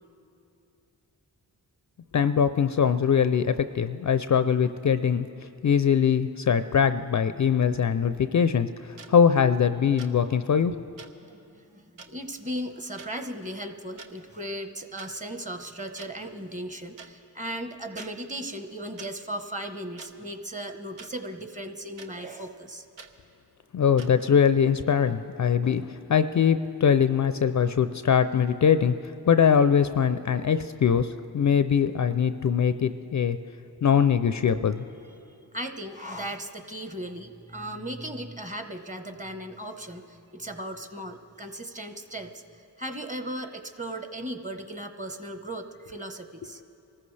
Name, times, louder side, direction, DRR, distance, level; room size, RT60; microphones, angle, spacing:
voice 1, 2.1-10.8 23.7-28.9 29.3-33.4 33.8-34.8, left 7 dB, 45° left, 11 dB, 0.5 m, -22 dB
sound 1, 9.0-9.1 10.0-10.1 11.0-11.1 12.0-12.1 13.0-13.1 13.8-14.1 15.0-15.1 16.0-16.1 17.0-17.1 18.0-18.1 19.0-19.1 20.0-20.1 21.0-21.1 22.0-22.1 23.0-23.1 24.0-24.1, right 5 dB, 85° right, 0.9 m, -45 dB
voice 2, 11.2-22.9 35.5-46.6, right 1 dB, 15° right, 7 dB, 1.1 m, -37 dB
24.5 x 14.0 x 3.3 m, 2.7 s
cardioid pair, 40°, 43 cm